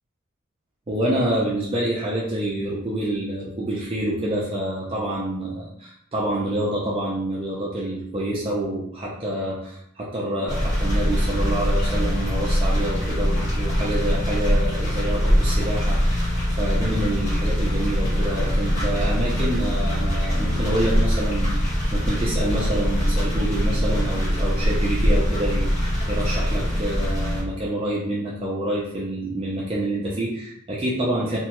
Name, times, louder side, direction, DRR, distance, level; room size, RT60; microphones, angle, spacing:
voice 1, 0.9-16.3 16.6-25.7 26.1-31.4, right 1 dB, 30° right, -6 dB, 0.5 m, -27 dB
sound 1, 10.5-27.4, equal, 40° left, 1.3 m, -22 dB
2.9 x 2.3 x 2.9 m, 0.71 s
head